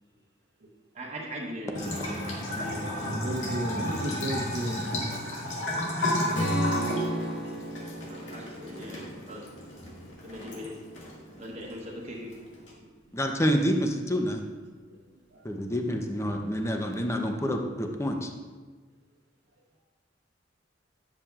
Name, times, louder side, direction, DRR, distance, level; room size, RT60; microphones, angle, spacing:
voice 1, 0.9-3.2 7.0-7.2 8.1-9.5 10.2-10.7 11.4-12.3, equal, 35° right, -3 dB, 1.0 m, -40 dB
Bathtub (filling or washing) / Trickle dribble, 1.7-12.7, left 1 dB, 85° left, 1.9 m, -34 dB
voice 2, 3.1-5.1 6.8-7.4 9.1-9.2 15.3-15.4, right 1 dB, 65° right, -3 dB, 0.9 m, -34 dB
Strum, 6.3-10.5, equal, 40° left, 2.0 m, -33 dB
voice 3, 13.1-14.4 15.4-18.3, equal, 15° left, 3 dB, 0.6 m, -28 dB
10.0 x 6.9 x 2.4 m, 1.4 s
head